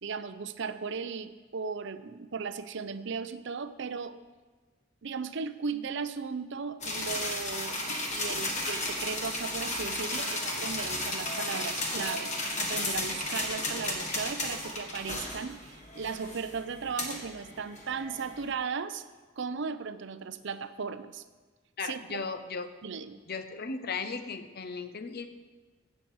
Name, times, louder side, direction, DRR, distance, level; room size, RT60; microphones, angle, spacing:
voice 1, 0.0-4.2 5.0-19.0 19.4-21.2 21.8-22.2 22.8-23.2, right 5 dB, 65° right, 12 dB, 0.6 m, -36 dB
sound 1, 6.8-18.5, left 2 dB, 40° left, 1.5 m, -34 dB
voice 2, 21.8-22.7 23.3-25.3, left 4 dB, 55° left, 10 dB, 0.8 m, -36 dB
15.0 x 7.5 x 4.8 m, 1.3 s
head